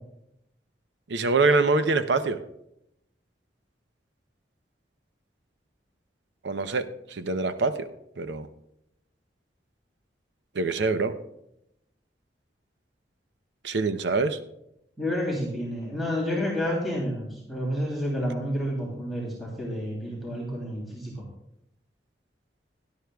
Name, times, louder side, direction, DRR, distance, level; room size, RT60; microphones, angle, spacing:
voice 1, 1.1-2.4 6.4-7.9 8.2-8.5 10.5-11.1 13.6-14.4, right 3 dB, 85° right, 10 dB, 0.7 m, -24 dB
voice 2, 15.0-21.2, equal, ahead, -5 dB, 3.1 m, -30 dB
17.5 x 11.5 x 2.3 m, 0.80 s
head